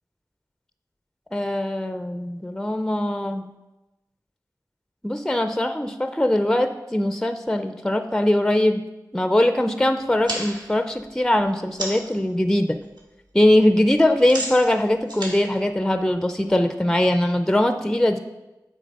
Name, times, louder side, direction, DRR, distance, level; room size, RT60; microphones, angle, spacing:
voice 1, 1.3-3.5 5.0-8.8 9.1-12.8 13.3-18.2, left 1 dB, 5° left, 9 dB, 0.4 m, -21 dB
sound 1, 10.0-12.2 12.6-13.0 13.3-16.5, right 1 dB, 70° right, 1.5 m, -34 dB
7.6 x 4.0 x 5.2 m, 1.0 s
wide cardioid pair, 45°, 7 cm